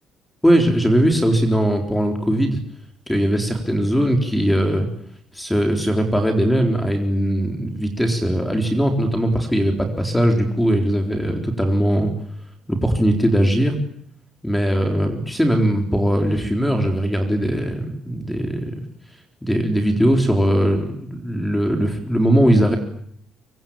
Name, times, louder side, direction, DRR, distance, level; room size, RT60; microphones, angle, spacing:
voice 1, 0.4-2.6 3.1-4.9 5.3-12.1 12.7-13.7 14.4-18.8 19.4-22.8, equal, 5° left, 4 dB, 3.9 m, -20 dB
25.0 x 24.0 x 9.0 m, 0.66 s
cardioid pair, 145°, 0 cm